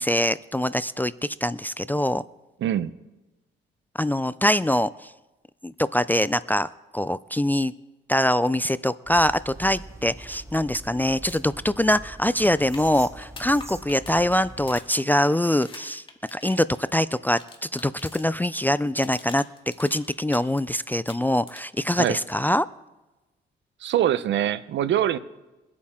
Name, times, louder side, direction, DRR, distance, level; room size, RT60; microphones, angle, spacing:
voice 1, 0.0-2.2 4.0-5.1 5.6-6.7 6.9-7.7 8.1-16.0 16.3-19.4 19.8-22.7, left 1 dB, 10° left, 16 dB, 0.3 m, -23 dB
voice 2, 2.6-2.9 22.0-22.2 23.8-25.2, right 11 dB, 70° right, 15 dB, 0.7 m, -23 dB
sound 1, 9.1-14.8, right 1 dB, 15° right, 1.1 m, -43 dB
sound 2, 11.2-11.4 11.6-11.7 12.0-18.5 18.8-20.6 20.9-21.8 23.9-24.0, left 3 dB, 25° left, 2.0 m, -45 dB
23.0 x 8.6 x 3.6 m, 1.1 s
cardioid pair, 90°, 20 cm